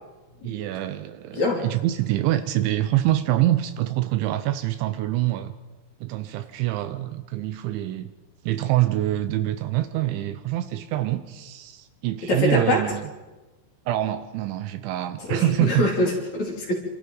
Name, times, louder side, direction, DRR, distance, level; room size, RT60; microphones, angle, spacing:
voice 1, 0.4-5.5 6.0-8.1 8.4-13.1 13.9-15.8, right 14 dB, 80° right, 10 dB, 3.0 m, -25 dB
voice 2, 1.3-1.6 12.3-12.8 15.3-16.7, left 2 dB, 40° left, -1 dB, 3.9 m, -24 dB
27.5 x 26.0 x 4.0 m, 1.2 s
omnidirectional pair, 5.6 m